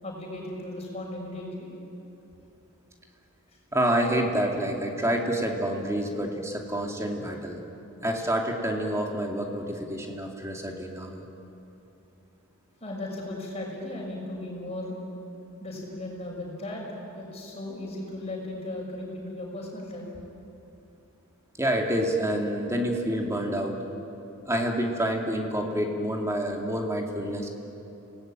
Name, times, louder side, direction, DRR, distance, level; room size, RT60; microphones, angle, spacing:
voice 1, 0.0-1.7 12.8-14.9 15.6-16.8 17.2-20.1, left 1 dB, 30° left, -2 dB, 6.4 m, -36 dB
voice 2, 3.7-7.6 8.0-11.2 21.6-23.8 24.5-27.5, right 1 dB, 15° right, 1 dB, 2.6 m, -28 dB
29.5 x 19.0 x 9.1 m, 3.0 s
head